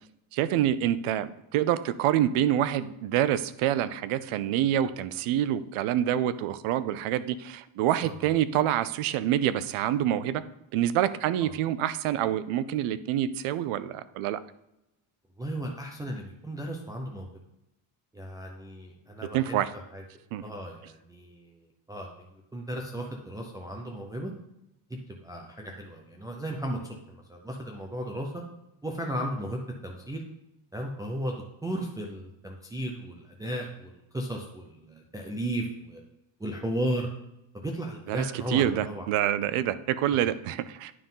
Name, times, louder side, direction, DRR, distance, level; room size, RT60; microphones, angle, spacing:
voice 1, 0.3-10.4 10.7-14.4 19.3-19.7 20.3-20.4 38.1-40.9, right 11 dB, 85° right, 15 dB, 0.6 m, -27 dB
voice 2, 15.4-17.3 18.1-19.6 19.9-20.0 20.4-24.3 24.9-28.4 28.8-30.2 30.7-31.3 31.6-36.0 36.4-37.1 37.6-39.1 40.1-40.2, right 1 dB, 10° right, -1 dB, 0.5 m, -35 dB
9.5 x 3.7 x 5.5 m, 0.88 s
cardioid pair, 160°, 49 cm